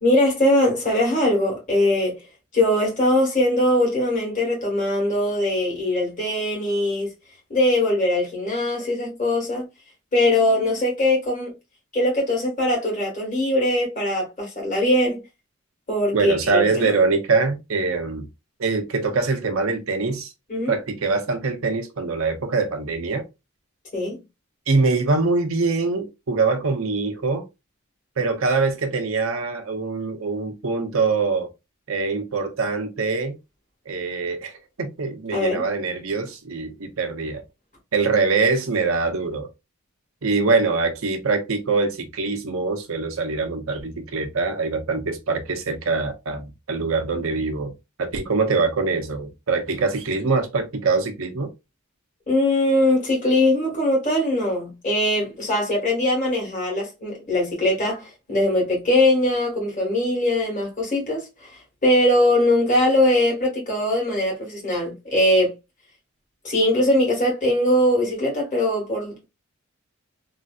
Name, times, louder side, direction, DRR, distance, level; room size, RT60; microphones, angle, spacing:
voice 1, 0.0-2.1 2.5-7.1 7.5-9.7 10.1-11.5 11.9-15.2 15.9-16.9 20.5-20.7 23.9-24.2 35.3-35.6 52.3-65.5 66.4-69.2, left 1 dB, 40° left, 1.7 m, -21 dB
voice 2, 16.1-18.3 18.6-20.3 20.7-23.2 24.7-27.5 28.2-31.5 31.9-33.4 33.9-34.5 34.8-37.4 37.9-39.5 40.2-51.5, right 4 dB, 75° right, 0.7 m, -23 dB
3.1 x 2.7 x 2.4 m
head